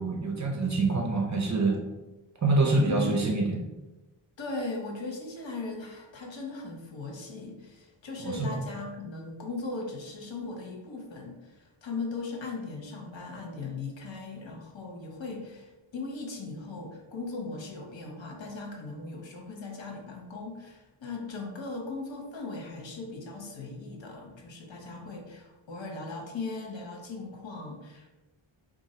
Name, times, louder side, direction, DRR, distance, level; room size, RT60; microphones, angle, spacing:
voice 1, 0.0-1.8 2.4-3.6 8.2-8.6, right 3 dB, 35° right, 1 dB, 0.6 m, -26 dB
voice 2, 2.8-3.3 4.4-28.1, left 3 dB, 60° left, 1 dB, 0.9 m, -38 dB
3.8 x 2.5 x 4.1 m, 1.1 s
wide cardioid pair, 175°, 50 cm